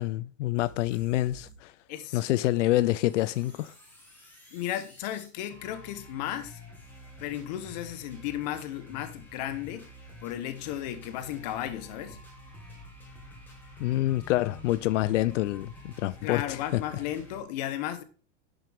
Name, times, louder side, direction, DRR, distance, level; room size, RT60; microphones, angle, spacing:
voice 1, 0.0-1.7 2.1-3.7 13.8-16.8, left 16 dB, 85° left, 0.5 m, -27 dB
sound 1, 0.6-1.5 1.8-17.4, left 1 dB, 5° left, 1.8 m, -49 dB
voice 2, 1.9-2.2 4.5-6.6 7.2-9.9 10.2-12.2 16.2-18.0, left 12 dB, 35° left, 1.0 m, -34 dB
11.0 x 5.9 x 3.5 m
supercardioid pair, 175°, 35 cm